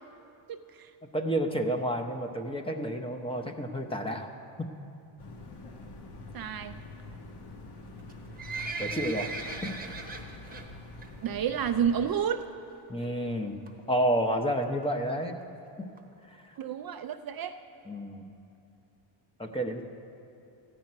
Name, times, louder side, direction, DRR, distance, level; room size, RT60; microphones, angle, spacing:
voice 1, 0.5-0.9 6.3-6.7 11.2-12.5 16.6-17.6, right 8 dB, 50° right, 8 dB, 0.5 m, -30 dB
voice 2, 1.1-4.3 4.6-4.7 8.8-9.3 9.6-9.7 12.9-13.5 13.9-15.4 15.8-15.9 16.3-16.5 17.9-18.2 19.4-19.9, right 1 dB, 10° left, 3 dB, 0.7 m, -30 dB
sound 1, 5.2-12.1, left 2 dB, 55° left, 1.4 m, -45 dB
Livestock farm animals working animals, 8.0-10.7 11.0-11.3 11.6-11.7 12.4-12.5 12.7-12.8 13.0-13.1 13.7-13.9 14.5-14.6 14.8-14.9 15.1-15.2 15.4-15.5 16.0-16.1 16.5-16.6 17.1-17.2, right 4 dB, 20° right, 1.0 m, -38 dB
14.0 x 5.9 x 9.5 m, 2.7 s
cardioid pair, 130°, 48 cm